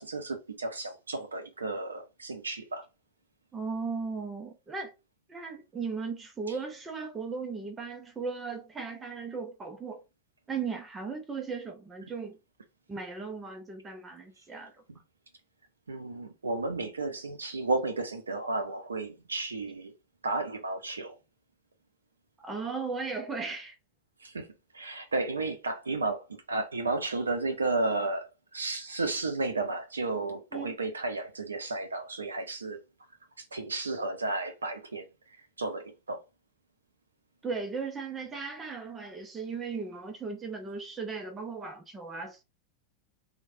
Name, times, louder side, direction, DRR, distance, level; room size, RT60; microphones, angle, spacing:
voice 1, 0.0-2.8 15.9-19.9 20.2-21.1 24.2-24.5 24.7-32.8 33.4-35.1 35.6-36.2, right 3 dB, 75° right, 0.5 m, -33 dB
voice 2, 3.5-4.9 5.3-10.0 10.5-12.4 12.9-14.7 22.4-23.8 30.5-30.7 37.4-42.4, right 4 dB, 15° right, 0.5 m, -37 dB
3.1 x 2.1 x 2.6 m
figure-of-eight pair, 90°, 0 cm